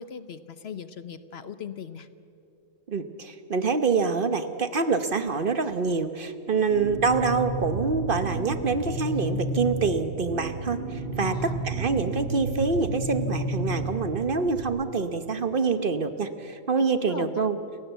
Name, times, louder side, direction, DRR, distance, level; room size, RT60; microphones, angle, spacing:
voice 1, 0.0-2.1 11.2-11.6 17.0-17.5, left 7 dB, 55° left, 13 dB, 1.0 m, -39 dB
voice 2, 2.9-17.6, right 4 dB, 45° right, 10 dB, 1.1 m, -26 dB
sound 1, 6.7-14.6, right 2 dB, 85° right, 2.2 m, -31 dB
29.5 x 16.0 x 8.1 m, 2.6 s
omnidirectional pair, 1.3 m